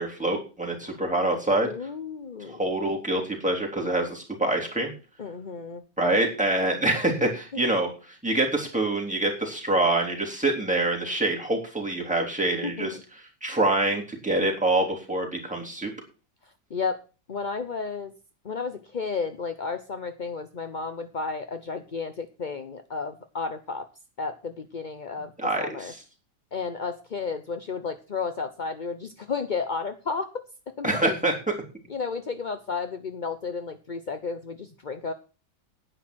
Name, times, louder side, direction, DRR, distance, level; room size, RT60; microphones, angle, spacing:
voice 1, 0.0-1.7 2.5-4.9 6.0-7.9 8.2-13.0 13.4-15.9 25.4-25.9 30.8-31.3, right 2 dB, 5° right, -2 dB, 3.4 m, -25 dB
voice 2, 1.6-2.6 5.2-5.8 12.6-13.0 16.7-17.0 17.3-18.1 18.4-23.9 24.2-25.3 25.6-25.9 26.5-30.4 30.8-31.1 31.9-35.1, left 5 dB, 45° left, 8 dB, 0.6 m, -32 dB
10.0 x 9.6 x 6.3 m, 0.34 s
omnidirectional pair, 2.1 m